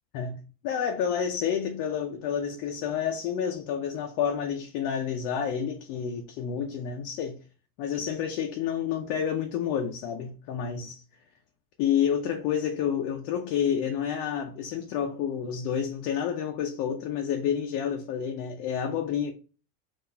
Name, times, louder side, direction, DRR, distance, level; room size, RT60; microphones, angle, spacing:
voice 1, 0.1-7.4 7.8-11.0 11.8-19.3, left 8 dB, 45° left, 0.5 m, -29 dB
3.9 x 2.5 x 2.7 m
supercardioid pair, 135°, 46 cm